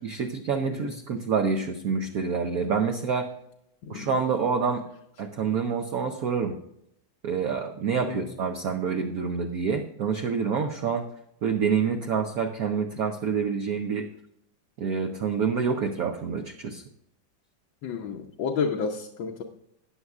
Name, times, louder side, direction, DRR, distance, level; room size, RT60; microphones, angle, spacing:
voice 1, 0.0-3.3 3.9-4.8 5.2-6.6 7.2-11.0 11.4-14.1 14.8-16.8, right 6 dB, 60° right, 4 dB, 1.0 m, -27 dB
voice 2, 17.8-19.4, left 5 dB, 80° left, 1 dB, 1.6 m, -31 dB
14.0 x 9.6 x 2.4 m, 0.77 s
omnidirectional pair, 2.1 m